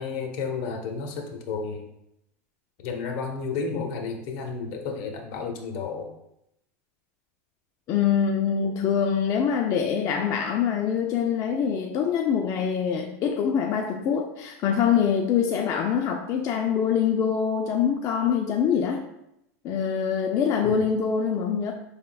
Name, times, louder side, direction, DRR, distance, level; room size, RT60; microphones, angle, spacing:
voice 1, 0.0-1.8 2.8-6.1 20.6-20.8, left 5 dB, 65° left, 3 dB, 0.9 m, -32 dB
voice 2, 7.9-19.0 19.6-21.7, left 7 dB, 40° left, 3 dB, 0.4 m, -24 dB
5.6 x 3.5 x 2.3 m, 0.82 s
supercardioid pair, 115°, 8 cm